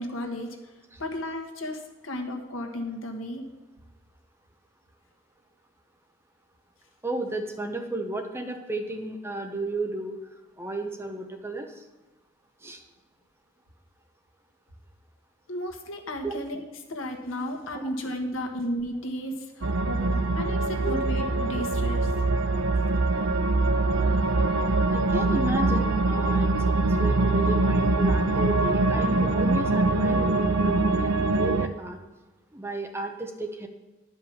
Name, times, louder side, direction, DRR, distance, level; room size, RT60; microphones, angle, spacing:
voice 1, 0.0-0.7 1.0-3.4 15.5-16.6 16.9-22.1, equal, 80° left, 3 dB, 1.5 m, -34 dB
voice 2, 7.0-10.2 10.6-11.8 12.6-12.8 16.2-16.3 17.7-17.9 20.8-20.9 24.9-32.0 32.5-33.7, right 2 dB, 10° right, 4 dB, 0.9 m, -33 dB
sound 1, 19.6-31.7, right 2 dB, 90° right, 0.7 m, -23 dB
11.0 x 5.4 x 7.2 m, 1.1 s
head